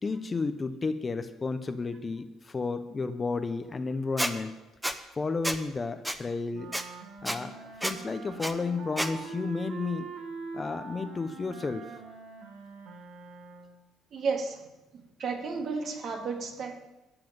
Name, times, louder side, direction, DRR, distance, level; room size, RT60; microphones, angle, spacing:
voice 1, 0.0-4.5 5.1-6.7 7.2-10.1 10.5-12.0, left 4 dB, 25° left, 10 dB, 0.8 m, -32 dB
Squeak, 4.2-4.3 4.8-4.9 5.4-5.6 6.0-6.2 6.7-6.8 7.2-7.4 7.8-7.9 8.4-8.5 9.0-9.1, right 1 dB, 5° right, 0.8 m, -29 dB
sound 1, 6.5-13.9, right 4 dB, 80° right, 1.4 m, -43 dB
voice 2, 14.1-14.6 14.9-16.8, right 4 dB, 50° right, 2 dB, 2.2 m, -33 dB
13.0 x 5.9 x 9.0 m, 1.0 s
cardioid pair, 110°, 0 cm